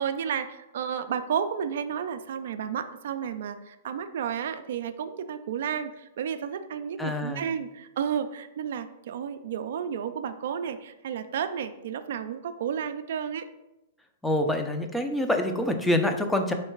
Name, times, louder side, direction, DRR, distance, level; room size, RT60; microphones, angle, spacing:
voice 1, 0.0-13.5, right 8 dB, 65° right, 9 dB, 0.3 m, -32 dB
voice 2, 7.0-7.4 14.2-16.5, left 1 dB, 5° left, 5 dB, 0.4 m, -26 dB
3.7 x 3.2 x 4.5 m, 0.94 s
hypercardioid pair, 140°, 0 cm